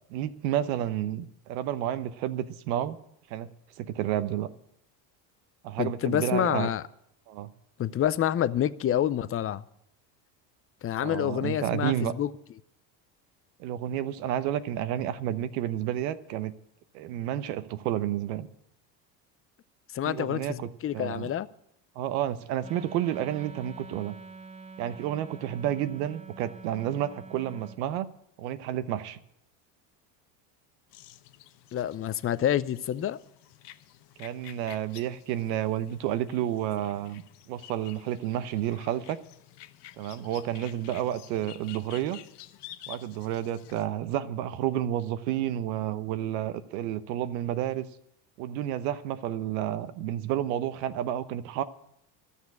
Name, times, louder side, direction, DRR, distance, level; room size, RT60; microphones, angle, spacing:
voice 1, 0.1-3.0 3.3-3.5 3.8-4.5 5.6-6.7 7.3-7.5 11.0-12.1 13.6-16.5 16.9-18.5 20.1-21.3 21.9-24.1 24.8-28.1 28.4-29.2 34.2-39.2 40.0-42.2 42.9-47.9 48.4-51.6, right 11 dB, 80° right, 1.0 m, -30 dB
voice 2, 5.8-6.8 7.8-9.6 10.8-12.3 19.9-21.5 31.7-33.2, left 11 dB, 30° left, 0.5 m, -28 dB
Wind instrument woodwind instrument, 22.6-27.8, right 4 dB, 15° right, 0.6 m, -46 dB
sound 1, 30.9-43.9, left 13 dB, 55° left, 1.0 m, -51 dB
13.0 x 7.0 x 9.5 m
supercardioid pair, 95°, 49 cm